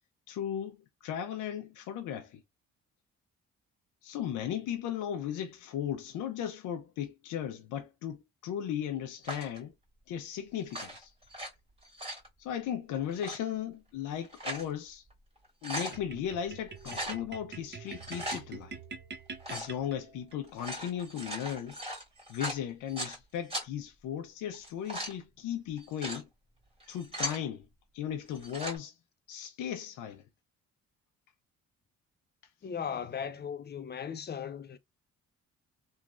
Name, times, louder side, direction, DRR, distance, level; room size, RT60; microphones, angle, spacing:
voice 1, 0.3-2.4 4.0-9.7 10.1-11.1 12.4-15.0 15.6-18.8 19.5-21.8 22.3-26.3 26.9-27.7 27.9-28.9 29.3-30.2, left 9 dB, 80° left, 0.5 m, -36 dB
sound 1, 9.2-9.6 10.6-11.5 11.8-12.3 13.1-13.4 14.1-14.7 15.1-15.2 15.4-16.0 16.8-17.2 17.9-18.4 19.4-19.7 20.4-23.2 23.5-23.7 24.5-25.2 25.8-26.2 26.8-27.4 28.3-28.8, equal, 20° right, 1.8 m, -38 dB
sound 2, 15.9-20.4, right 4 dB, 35° right, 0.7 m, -45 dB
voice 2, 32.6-34.8, left 7 dB, 35° left, 0.6 m, -37 dB
3.1 x 2.4 x 2.4 m
cardioid pair, 90°, 30 cm